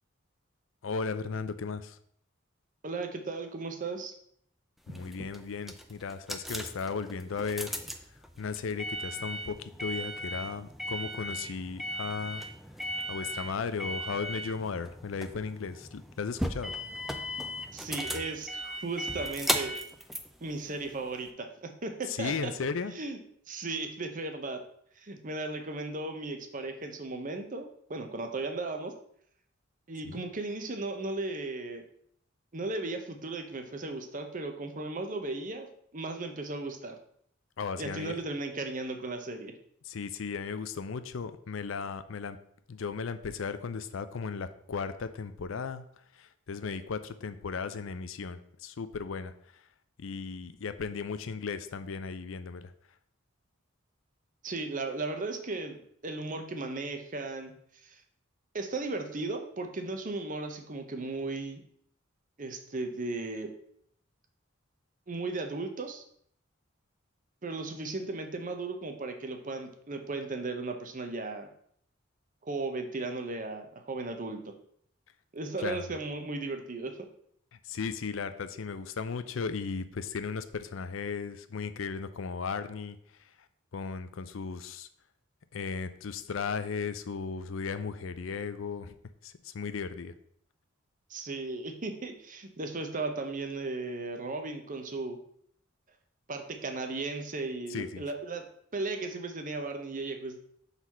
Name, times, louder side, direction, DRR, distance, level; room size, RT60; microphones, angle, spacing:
voice 1, 0.8-2.0 4.9-7.8 8.4-12.4 13.1-16.7 22.1-22.9 30.0-30.2 37.6-38.2 39.8-42.4 42.7-45.9 46.1-49.6 50.0-52.7 75.6-75.8 77.6-83.0 83.7-84.9 85.5-89.0 89.2-90.1 97.7-98.0, left 5 dB, 70° left, 12 dB, 0.5 m, -36 dB
voice 2, 2.8-4.1 17.7-19.8 20.4-22.5 22.9-23.2 23.5-24.6 25.0-28.9 29.9-31.8 32.5-36.9 37.8-39.5 54.4-57.5 57.8-57.9 58.5-61.6 62.4-63.5 65.1-66.0 67.4-71.5 72.4-74.4 75.3-77.1 91.1-95.2 96.3-98.4 98.7-100.4, right 3 dB, 40° right, 5 dB, 0.8 m, -36 dB
sound 1, 4.9-21.3, equal, ahead, 0.4 m, -37 dB
4.6 x 4.1 x 5.4 m, 0.67 s
head